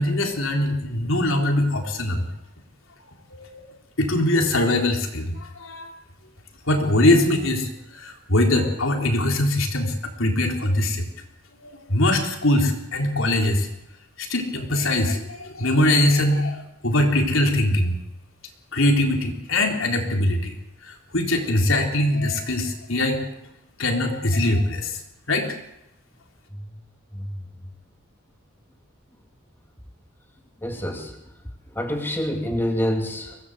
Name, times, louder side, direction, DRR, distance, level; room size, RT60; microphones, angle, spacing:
voice 1, 0.0-2.2 3.3-3.6 4.0-5.9 6.7-11.0 11.6-13.7 14.2-18.0 18.7-20.5 20.8-23.2 23.8-25.0 25.3-25.5, left 1 dB, 65° left, 3 dB, 4.1 m, -22 dB
voice 2, 27.1-27.4 30.6-31.2 31.7-33.4, equal, 10° left, 2 dB, 2.7 m, -27 dB
24.0 x 18.0 x 8.2 m, 0.87 s
head